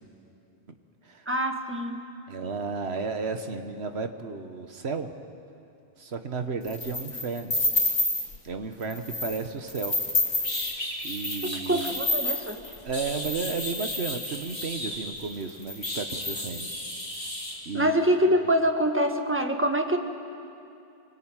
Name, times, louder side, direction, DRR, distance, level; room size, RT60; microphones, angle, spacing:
voice 1, 1.3-2.0 11.7-12.6 17.7-20.0, equal, 10° right, 4 dB, 1.5 m, -24 dB
voice 2, 2.3-5.1 6.0-7.5 8.4-10.0 11.0-12.0 12.8-16.7 17.6-17.9, right 4 dB, 70° right, 7 dB, 1.6 m, -33 dB
sound 1, 6.7-8.4 8.8-9.4 9.7-14.7 15.3-15.4 15.6-17.1, left 2 dB, 45° left, 2.8 m, -30 dB
sound 2, 10.0-10.1 10.4-12.0 12.6-15.3 15.8-17.6, left 1 dB, 30° left, 4.3 m, -35 dB
26.0 x 19.0 x 9.1 m, 2.7 s
omnidirectional pair, 1.1 m